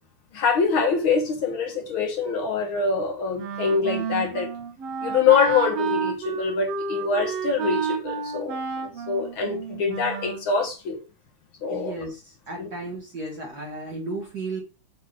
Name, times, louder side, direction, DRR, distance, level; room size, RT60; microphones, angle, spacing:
voice 1, 0.3-4.5 5.0-11.0 11.6-11.9 12.6-12.7, left 5 dB, 70° left, 1.2 m, -24 dB
Wind instrument woodwind instrument, 3.4-10.5, right 6 dB, 60° right, 1.7 m, -30 dB
voice 2, 11.7-14.6, right 2 dB, 45° right, 1.3 m, -34 dB
6.4 x 3.9 x 4.9 m
omnidirectional pair, 3.8 m